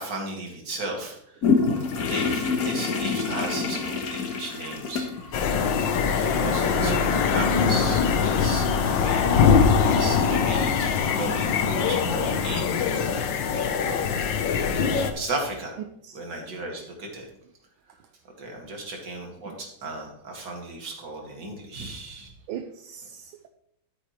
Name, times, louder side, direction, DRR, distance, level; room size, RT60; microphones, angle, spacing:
voice 1, 0.0-1.5 1.9-5.1 5.4-5.5 5.8-9.3 9.8-12.8 13.8-14.2 15.1-15.8 16.1-17.3 18.4-22.3, right 2 dB, 55° right, 0 dB, 2.7 m, -35 dB
sound 1, 1.4-9.4, left 5 dB, 50° left, 1.4 m, -29 dB
sound 2, 5.3-15.1, left 6 dB, 65° left, 1.5 m, -22 dB
voice 2, 6.8-7.2 19.5-19.6 22.5-23.5, right 9 dB, 75° right, 7 dB, 1.5 m, -36 dB
13.0 x 8.9 x 3.2 m, 0.74 s
omnidirectional pair, 2.4 m